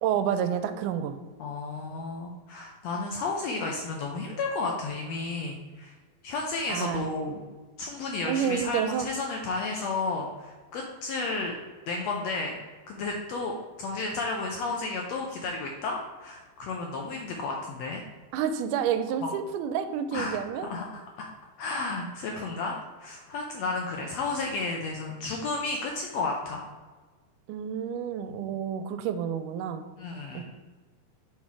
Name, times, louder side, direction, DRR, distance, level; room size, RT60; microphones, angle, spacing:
voice 1, 0.0-1.2 6.7-7.1 8.2-9.1 18.3-20.7 27.5-29.9 30.3-30.4, right 8 dB, 85° right, 10 dB, 2.1 m, -29 dB
voice 2, 1.4-5.9 6.2-7.4 7.8-11.5 11.9-12.5 12.9-18.0 19.2-19.3 20.1-20.4 20.7-20.8 21.2-21.3 21.6-26.6 30.0-30.4, left 3 dB, 80° left, 1 dB, 1.5 m, -32 dB
5.7 x 4.3 x 4.7 m, 1.4 s
omnidirectional pair, 3.6 m